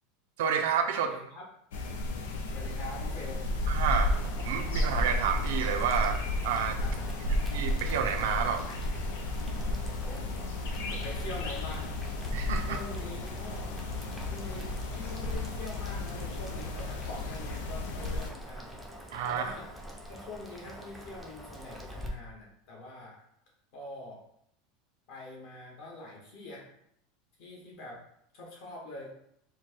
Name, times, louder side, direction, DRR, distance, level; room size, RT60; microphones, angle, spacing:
voice 1, 0.4-1.1 3.7-6.8 7.5-8.6 12.3-12.8 19.1-19.5, right 7 dB, 75° right, 5 dB, 0.5 m, -30 dB
voice 2, 1.0-1.4 2.5-3.4 6.8-7.0 10.0-10.3 10.5-11.9 12.7-13.8 14.2-18.7 19.3-19.7 20.1-23.2 23.7-24.2 25.1-26.6 27.4-28.0 28.3-29.1, left 2 dB, 50° left, -2 dB, 1.3 m, -44 dB
sound 1, 1.7-18.3, left 1 dB, 85° left, 0.6 m, -33 dB
Boiling, 4.1-22.1, right 1 dB, ahead, 0.5 m, -44 dB
4.5 x 2.2 x 4.4 m, 0.73 s
supercardioid pair, 175°, 0 cm